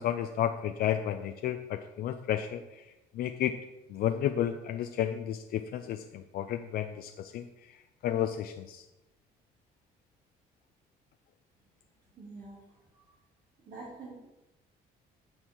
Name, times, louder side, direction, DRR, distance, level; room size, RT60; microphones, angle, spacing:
voice 1, 0.0-2.8 3.1-3.5 3.9-7.4 8.0-8.8, left 10 dB, 65° left, 6 dB, 0.5 m, -32 dB
voice 2, 12.1-12.6 13.6-14.1, right 3 dB, 55° right, -6 dB, 2.7 m, -45 dB
12.5 x 4.6 x 4.6 m, 1.0 s
cardioid pair, 110°, 17 cm